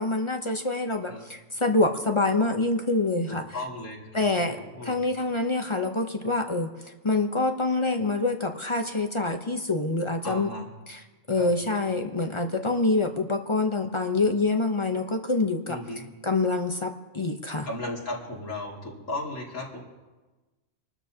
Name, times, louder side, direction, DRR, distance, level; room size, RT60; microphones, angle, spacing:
voice 1, 0.0-3.6 4.1-6.7 7.0-10.5 10.9-15.8 16.2-17.7, left 2 dB, 30° left, 5 dB, 0.6 m, -26 dB
voice 2, 3.3-5.0 10.2-10.7 11.3-11.5 15.6-16.0 17.7-19.8, left 2 dB, 75° left, -3 dB, 2.9 m, -36 dB
26.5 x 13.0 x 2.8 m, 1.2 s
omnidirectional pair, 1.3 m